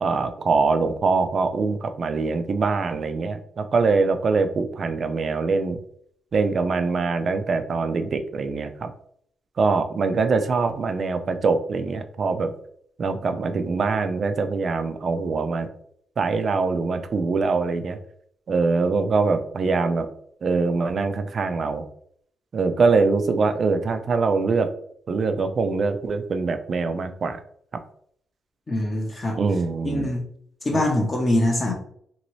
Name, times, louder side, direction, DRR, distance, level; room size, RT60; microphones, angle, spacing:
voice 1, 0.0-5.8 6.3-8.9 9.6-12.5 13.0-15.7 16.2-18.0 18.5-20.1 20.4-21.8 22.5-24.7 25.1-27.4 29.4-30.1 30.7-30.8, right 4 dB, 40° right, 9 dB, 0.3 m, -23 dB
voice 2, 28.7-29.4 29.8-30.2 30.6-31.7, left 1 dB, 25° left, 0 dB, 0.5 m, -23 dB
3.0 x 2.7 x 3.0 m, 0.65 s
cardioid pair, 155°, 0 cm